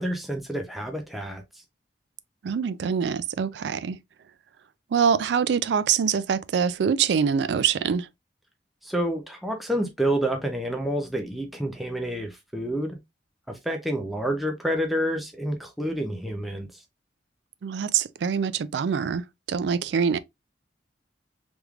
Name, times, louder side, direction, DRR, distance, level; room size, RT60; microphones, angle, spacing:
voice 1, 0.0-1.4 8.8-13.0 13.5-16.8, right 1 dB, ahead, 0.5 m, -28 dB
voice 2, 2.4-4.0 4.9-8.1 17.6-20.2, right 7 dB, 65° right, 0.3 m, -24 dB
3.5 x 3.2 x 2.3 m
head